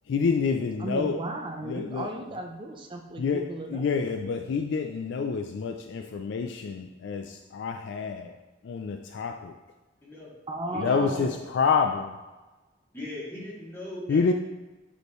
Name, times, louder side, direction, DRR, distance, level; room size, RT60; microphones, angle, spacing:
voice 1, 0.0-1.3 1.6-2.1 3.2-8.4 8.6-9.6 10.8-12.2 14.1-14.3, left 5 dB, 70° left, 5 dB, 0.3 m, -28 dB
voice 2, 0.8-3.8 10.5-11.4, right 2 dB, 25° right, 2 dB, 0.5 m, -35 dB
voice 3, 10.0-10.4 10.7-11.3 12.9-14.2, left 1 dB, 15° left, -7 dB, 1.9 m, -39 dB
6.3 x 5.3 x 3.1 m, 1.1 s
head